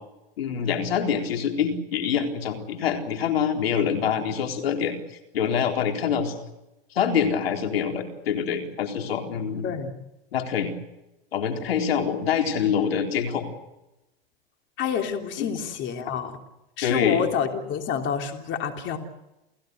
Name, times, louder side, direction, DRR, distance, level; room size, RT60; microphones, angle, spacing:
voice 1, 0.4-4.9 5.3-6.3 6.9-9.7 10.3-10.7 11.3-13.4 15.4-15.5 16.8-17.2, left 7 dB, 85° left, 4 dB, 4.1 m, -25 dB
voice 2, 9.6-9.9 14.8-16.4 16.8-19.0, left 7 dB, 40° left, 4 dB, 3.3 m, -28 dB
29.5 x 16.5 x 8.1 m, 0.97 s
hypercardioid pair, 115°, 29 cm